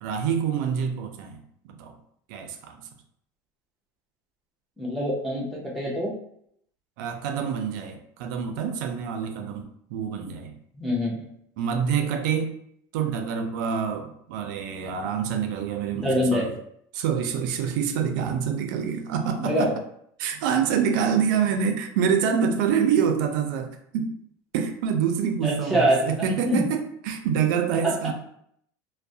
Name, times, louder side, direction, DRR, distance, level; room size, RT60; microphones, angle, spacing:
voice 1, 0.0-1.9 2.3-2.8 7.0-10.5 11.6-12.5 12.9-16.5 16.9-19.7 20.2-24.1 24.5-28.1, right 7 dB, 80° right, 5 dB, 0.4 m, -26 dB
voice 2, 4.8-6.1 10.8-11.3 15.9-16.5 19.4-19.7 25.4-26.7 27.8-28.1, equal, ahead, -6 dB, 0.5 m, -25 dB
2.3 x 2.0 x 2.6 m, 0.70 s
cardioid pair, 165°, 10 cm